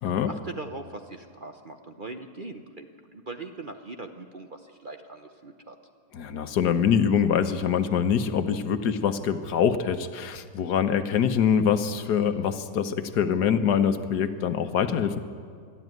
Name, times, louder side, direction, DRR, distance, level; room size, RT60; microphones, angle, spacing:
voice 1, 0.2-5.8, right 3 dB, 40° right, 6 dB, 0.8 m, -40 dB
voice 2, 6.1-15.2, left 7 dB, 75° left, 10 dB, 1.5 m, -24 dB
23.0 x 13.0 x 9.3 m, 2.1 s
omnidirectional pair, 1.8 m